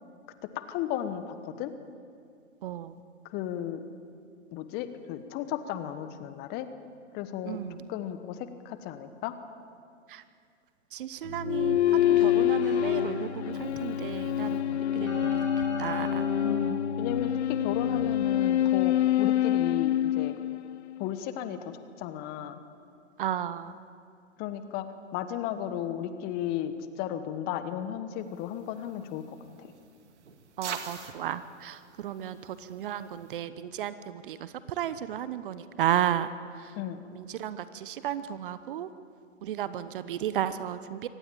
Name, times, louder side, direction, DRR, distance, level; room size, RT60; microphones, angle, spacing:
voice 1, 0.5-1.7 3.3-3.8 4.5-6.7 7.1-7.6 7.9-9.3 16.4-20.4 21.0-22.6 24.4-24.8 25.1-29.7 36.7-37.0, left 10 dB, 25° left, 11 dB, 1.3 m, -35 dB
voice 2, 2.6-2.9 7.5-7.8 10.1-10.2 10.9-15.3 15.8-16.3 17.9-18.1 23.2-23.7 30.6-36.7 37.1-38.9 39.4-41.1, right 10 dB, 45° right, 14 dB, 1.0 m, -33 dB
Keyboard (musical), 11.2-18.5, left 2 dB, 85° left, 6.9 m, -36 dB
sound 1, 11.4-21.1, left 12 dB, 60° left, 0.5 m, -26 dB
sound 2, 28.3-33.4, right 6 dB, 60° right, 2.3 m, -45 dB
25.0 x 17.5 x 8.8 m, 2.3 s
figure-of-eight pair, 120°, 38 cm